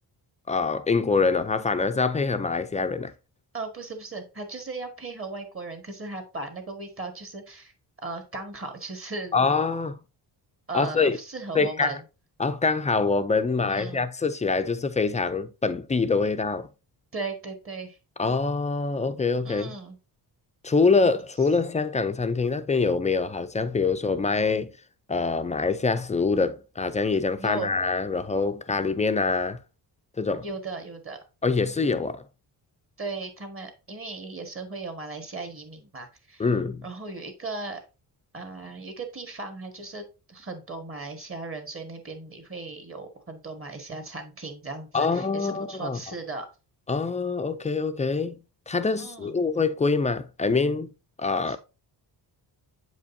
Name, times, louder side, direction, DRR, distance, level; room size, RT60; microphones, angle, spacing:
voice 1, 0.5-3.1 9.3-10.0 10.7-11.2 11.5-12.0 12.4-16.7 18.2-19.7 20.6-24.7 25.1-29.6 30.2-30.4 31.4-32.2 36.4-36.8 44.9-46.0 46.9-50.9 51.2-51.6, left 4 dB, 20° left, 0.3 m, -25 dB
voice 2, 3.5-7.7 8.0-9.4 10.7-12.0 13.6-14.0 17.1-18.0 19.4-20.0 27.4-27.7 30.4-31.2 33.0-36.5 36.8-37.8 38.3-46.5 49.0-49.3 51.5-51.6, right 3 dB, 30° right, 1.5 m, -37 dB
7.7 x 5.1 x 2.7 m
cardioid pair, 120°, 42 cm